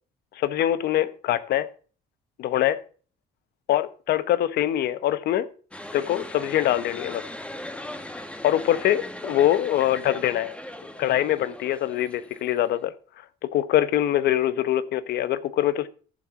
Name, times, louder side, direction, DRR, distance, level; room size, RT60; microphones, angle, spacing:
voice 1, 0.4-1.7 2.4-2.8 3.7-5.5 5.9-7.2 8.4-10.5 11.0-12.9 13.4-15.9, left 12 dB, 70° left, 14 dB, 1.1 m, -23 dB
sound 1, 5.7-12.8, left 1 dB, 5° left, 1.4 m, -39 dB
14.0 x 7.5 x 3.9 m, 0.39 s
cardioid pair, 110°, 17 cm